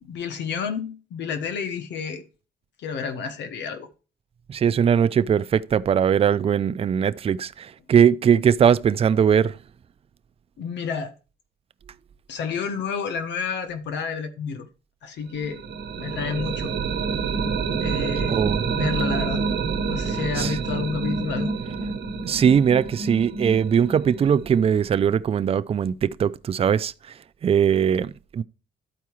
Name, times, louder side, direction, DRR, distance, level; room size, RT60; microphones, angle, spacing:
voice 1, 0.0-2.2 2.8-3.9 10.6-11.1 12.3-14.7 15.0-15.6 16.0-16.7 17.8-19.4 19.9-21.5, left 6 dB, 80° left, 1.2 m, -30 dB
voice 2, 4.5-9.6 18.2-19.0 20.4-20.6 22.2-26.9 27.4-28.4, right 8 dB, 35° right, 0.4 m, -20 dB
sound 1, 15.3-25.1, right 5 dB, 65° right, 1.1 m, -28 dB
12.5 x 4.7 x 3.0 m
cardioid pair, 110°, 18 cm